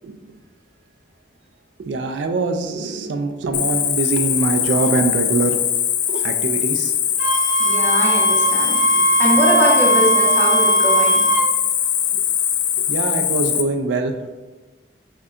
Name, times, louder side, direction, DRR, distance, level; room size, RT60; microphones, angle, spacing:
voice 1, 1.8-5.6 6.1-6.9 8.9-9.1 12.1-12.2 12.9-14.2, right 3 dB, 85° right, 6 dB, 0.4 m, -23 dB
Cricket, 3.5-13.6, left 10 dB, 85° left, 0.4 m, -21 dB
Wind instrument woodwind instrument, 7.2-11.5, right 3 dB, 45° right, 0.7 m, -19 dB
voice 2, 7.6-11.3, left 1 dB, 15° left, -5 dB, 0.8 m, -22 dB
6.3 x 2.2 x 2.4 m, 1.2 s
head